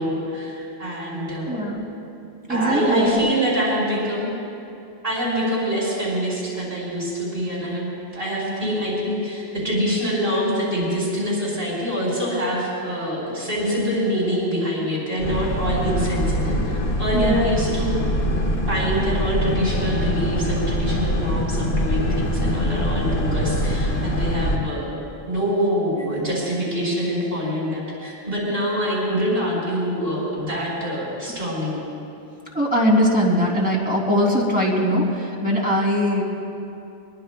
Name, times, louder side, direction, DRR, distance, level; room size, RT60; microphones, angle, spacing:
voice 1, 0.0-1.6 2.5-4.3 5.0-7.9 8.1-18.2 18.7-31.8, equal, 65° right, -5 dB, 4.9 m, -25 dB
voice 2, 1.5-1.8 2.5-3.3 17.1-17.4 32.5-36.2, equal, 10° right, -4 dB, 3.0 m, -20 dB
Boat Water vehicle, 15.2-24.6, equal, 55° left, 1.4 m, -23 dB
23.0 x 22.0 x 2.3 m, 2.6 s
omnidirectional pair, 1.1 m